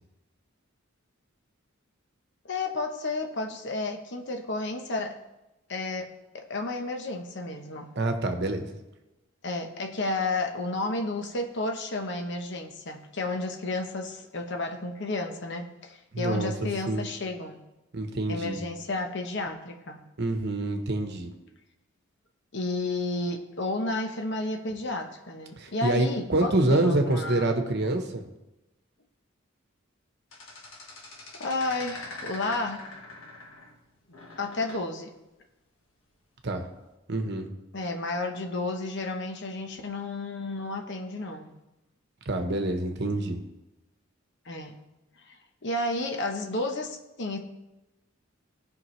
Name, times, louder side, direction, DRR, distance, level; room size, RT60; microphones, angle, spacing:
voice 1, 2.4-5.2 5.7-6.1 6.3-7.9 9.4-17.6 18.3-20.1 22.5-27.5 31.4-32.9 34.4-35.1 37.7-41.6 44.5-44.8 45.3-45.4 45.6-47.4, left 2 dB, 60° left, 4 dB, 1.0 m, -32 dB
voice 2, 7.9-8.7 16.1-16.5 16.9-17.0 17.9-18.6 20.2-21.3 25.6-28.2 36.4-36.6 37.1-37.5 42.2-43.4, right 2 dB, 55° right, 5 dB, 1.1 m, -26 dB
sound 1, 30.3-33.8 34.1-34.9 36.6-36.9, left 2 dB, 85° left, 1.6 m, -43 dB
17.0 x 5.7 x 3.2 m, 0.98 s
head